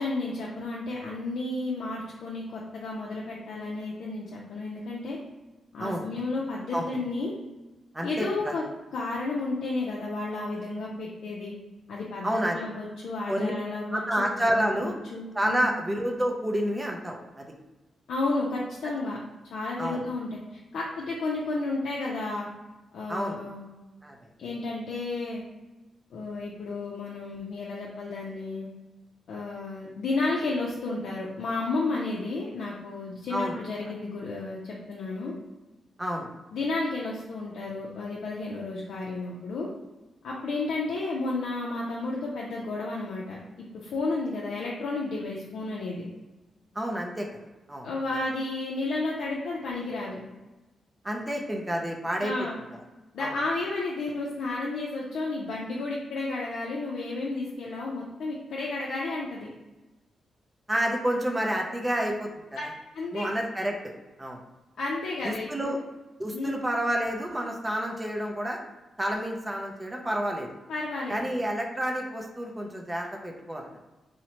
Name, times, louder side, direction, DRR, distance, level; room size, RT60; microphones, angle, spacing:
voice 1, 0.0-5.2 5.7-7.3 8.0-8.6 8.9-11.5 11.9-15.7 18.1-19.2 19.4-22.5 22.9-23.7 24.4-25.4 26.1-28.7 29.3-35.3 36.5-39.7 40.2-43.4 43.7-46.0 47.8-50.2 52.2-52.6 53.1-59.5 62.6-62.7 62.9-63.2 64.8-65.7 66.3-66.5 70.7-71.4, left 3 dB, 75° left, -4 dB, 0.4 m, -32 dB
voice 2, 7.9-8.5 12.2-12.6 13.3-13.5 13.9-14.9 15.4-17.5 19.8-20.0 23.1-23.4 24.0-24.1 33.3-33.6 36.0-36.3 46.8-47.3 47.7-47.9 51.0-52.3 53.2-53.3 60.7-62.3 62.6-62.7 63.1-63.8 64.2-64.4 65.2-65.8 66.2-68.6 69.0-70.5 71.1-73.7, equal, 15° right, 1 dB, 0.4 m, -29 dB
2.8 x 2.0 x 2.8 m, 1.1 s
cardioid pair, 105°, 0 cm